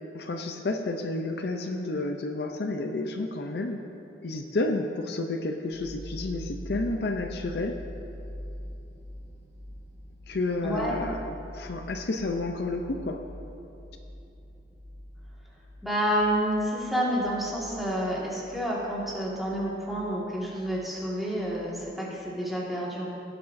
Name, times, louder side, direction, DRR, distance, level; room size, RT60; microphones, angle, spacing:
voice 1, 0.1-3.8 4.2-7.7 10.3-11.2 11.5-13.2, left 2 dB, 60° left, 4 dB, 0.5 m, -30 dB
sound 1, 5.7-21.8, equal, 75° right, 1.9 m, -44 dB
voice 2, 10.6-11.0 15.8-23.1, equal, ahead, -6 dB, 1.8 m, -29 dB
17.5 x 7.6 x 2.6 m, 2.8 s
head